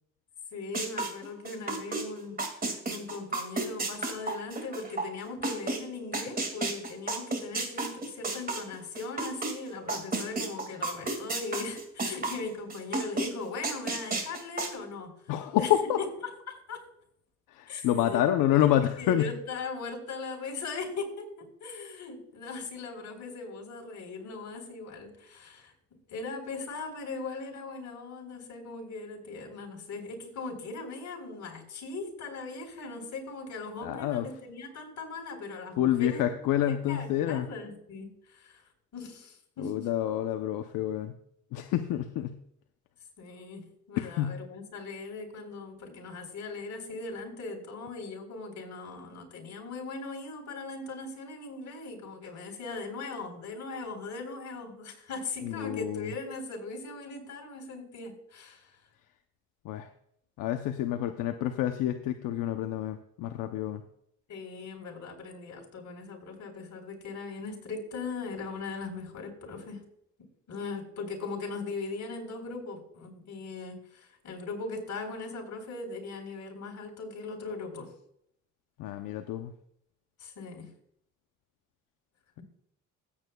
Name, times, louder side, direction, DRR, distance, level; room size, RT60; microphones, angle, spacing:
voice 1, 0.5-15.1 15.6-15.7 16.0-16.1 16.5-16.8 17.7-18.3 18.8-36.3 36.7-38.6 38.9-39.9 43.2-58.8 64.3-69.8 70.5-77.9 80.2-80.7, left 3 dB, 60° left, 1 dB, 4.0 m, -39 dB
sound 1, 0.7-2.0 2.4-5.8 6.1-9.5 9.9-12.4 12.7-13.3 13.6-14.7, right 3 dB, 30° right, 2.2 m, -31 dB
voice 2, 15.3-16.0 17.5-19.3 33.8-34.3 35.8-37.5 39.6-41.1 41.5-42.4 44.0-44.4 55.4-56.1 59.6-59.9 60.4-63.8 78.8-79.5, left 12 dB, 85° left, 7 dB, 0.7 m, -28 dB
16.0 x 8.5 x 2.3 m, 0.72 s
cardioid pair, 85°, 32 cm